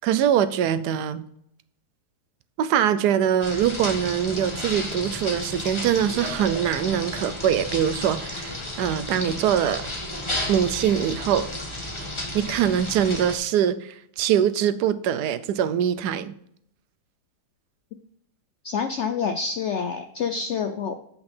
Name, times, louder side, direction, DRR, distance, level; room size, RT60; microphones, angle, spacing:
voice 1, 0.0-1.3 2.6-9.9 10.5-11.5 12.3-16.3, right 9 dB, 75° right, 12 dB, 1.1 m, -23 dB
sound 1, 3.4-13.4, left 1 dB, 20° left, 1.3 m, -33 dB
voice 2, 18.6-21.0, left 6 dB, 75° left, 7 dB, 0.6 m, -27 dB
7.8 x 5.7 x 4.3 m, 0.71 s
omnidirectional pair, 1.8 m